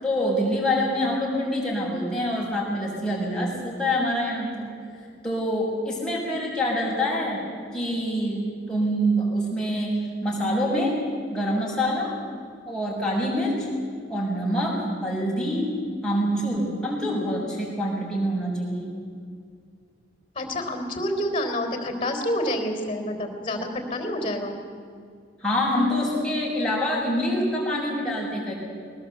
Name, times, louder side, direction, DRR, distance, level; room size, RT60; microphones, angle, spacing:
voice 1, 0.0-4.7 5.2-7.4 7.7-10.9 11.3-12.1 12.7-13.7 14.1-15.7 16.0-18.9 25.4-28.5, equal, 5° left, -5 dB, 6.9 m, -25 dB
voice 2, 20.4-24.6, left 1 dB, 30° left, 6 dB, 3.8 m, -28 dB
21.5 x 20.0 x 8.2 m, 2.2 s
head